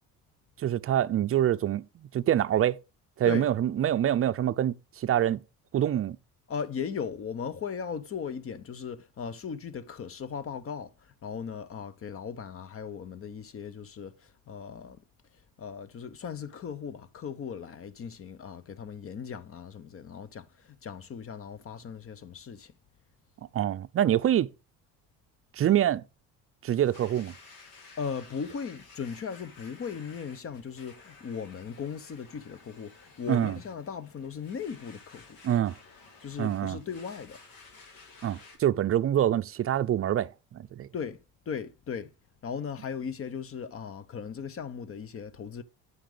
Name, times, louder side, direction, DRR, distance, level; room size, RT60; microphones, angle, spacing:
voice 1, 0.6-2.8 3.2-5.4 5.7-6.2 23.5-24.5 25.6-26.0 26.6-27.3 33.3-33.5 35.4-35.8 36.4-36.8 38.2-40.9, right 11 dB, 40° right, 0.5 m, -26 dB
voice 2, 6.5-15.0 15.6-22.7 28.0-35.4 36.2-37.4 40.9-41.2 41.5-42.1 42.4-45.6, left 6 dB, 40° left, 0.9 m, -38 dB
Domestic sounds home sounds, 26.7-38.6, left 4 dB, 75° left, 3.2 m, -54 dB
9.5 x 5.8 x 5.0 m
cardioid pair, 105°, 35 cm